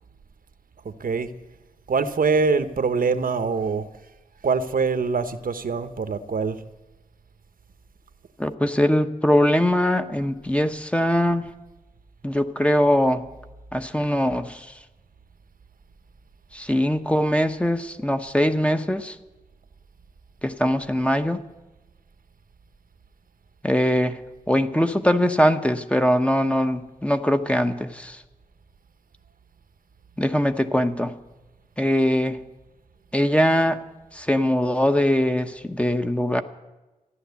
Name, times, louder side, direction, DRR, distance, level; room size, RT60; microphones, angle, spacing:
voice 1, 1.9-3.9 4.4-6.6, right 4 dB, 85° right, 11 dB, 1.0 m, -23 dB
voice 2, 8.4-11.4 12.2-13.2 13.7-14.7 16.5-19.2 20.4-21.4 23.6-24.2 24.5-28.2 30.2-31.2 31.8-32.4 33.1-33.8 34.1-36.4, equal, 10° left, 8 dB, 0.9 m, -22 dB
14.5 x 11.0 x 8.2 m, 1.1 s
wide cardioid pair, 110°, 14 cm